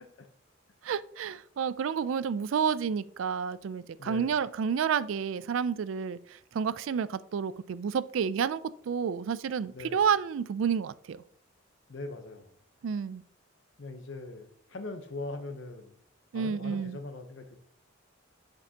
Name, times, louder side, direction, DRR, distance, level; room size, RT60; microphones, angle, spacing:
voice 1, 0.8-8.6 8.9-11.2 12.8-13.2 16.3-17.0, right 7 dB, 70° right, 0.3 m, -30 dB
voice 2, 4.0-4.4 9.7-10.0 11.9-12.6 13.8-16.0 16.3-17.6, left 2 dB, 65° left, 0.8 m, -41 dB
8.2 x 5.3 x 2.8 m
head